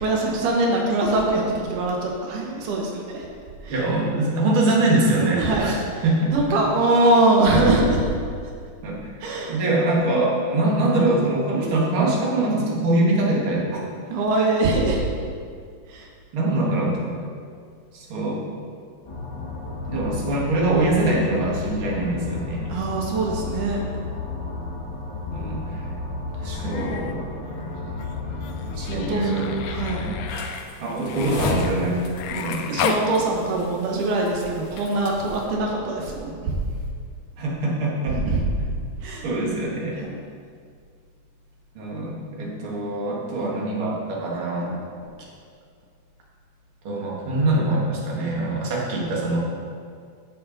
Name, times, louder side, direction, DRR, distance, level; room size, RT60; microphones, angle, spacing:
voice 1, 0.0-3.3 3.6-3.8 5.4-6.0 6.3-8.0 9.2-9.6 14.1-15.0 15.9-16.1 22.7-23.9 26.3-26.9 28.7-29.3 29.7-30.1 32.3-36.6 38.1-38.4 39.0-39.3 40.0-40.2 44.6-44.7, right 2 dB, 85° right, 0 dB, 2.6 m, -23 dB
voice 2, 3.7-5.8 6.0-6.6 8.8-9.1 9.5-13.8 16.3-17.2 17.9-18.5 19.9-22.6 25.3-25.8 26.5-27.2 28.8-29.5 30.8-32.0 32.3-32.9 37.4-38.2 39.2-40.0 41.8-44.8 46.8-49.4, right 2 dB, 45° right, -4 dB, 2.4 m, -23 dB
sound 1, 19.0-30.3, left 3 dB, 15° left, 0.9 m, -32 dB
Human voice, 26.4-27.2 27.5-33.1 34.7-34.8, left 8 dB, 85° left, 1.4 m, -33 dB
sound 2, 30.3-35.5, left 2 dB, 65° left, 2.2 m, -33 dB
10.0 x 8.3 x 4.0 m, 2.2 s
omnidirectional pair, 3.5 m